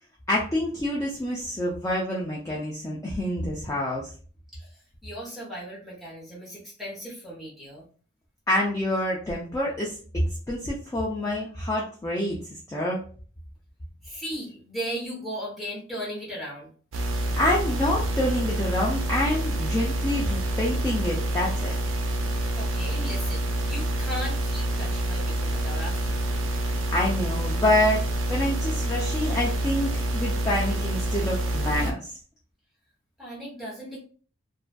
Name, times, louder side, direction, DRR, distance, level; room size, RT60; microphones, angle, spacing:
voice 1, 0.3-4.1 8.5-9.9 10.5-13.0 17.4-21.7 26.9-28.0 28.3-32.1, left 1 dB, 15° left, -4 dB, 0.3 m, -27 dB
voice 2, 4.5-7.9 14.0-16.7 22.6-26.3 33.2-34.0, equal, ahead, -6 dB, 0.8 m, -37 dB
sound 1, 16.9-31.9, right 1 dB, 80° right, 0.4 m, -27 dB
2.5 x 2.3 x 2.2 m, 0.42 s
head